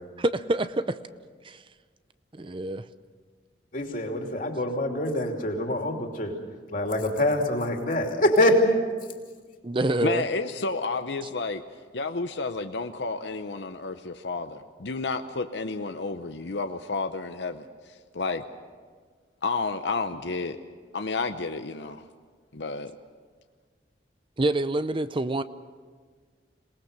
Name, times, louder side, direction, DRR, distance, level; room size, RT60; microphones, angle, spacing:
voice 1, 0.2-1.0 1.4-1.6 2.3-2.9 9.6-10.2 24.4-25.4, right 2 dB, 30° right, 0.5 m, -26 dB
voice 2, 3.7-6.3 6.7-8.8, left 1 dB, 45° left, 2.9 m, -24 dB
voice 3, 10.0-11.6 11.9-17.7 18.1-18.4 19.4-20.6 20.9-22.0 22.5-22.9, left 3 dB, 75° left, 0.8 m, -31 dB
27.0 x 19.0 x 6.7 m
head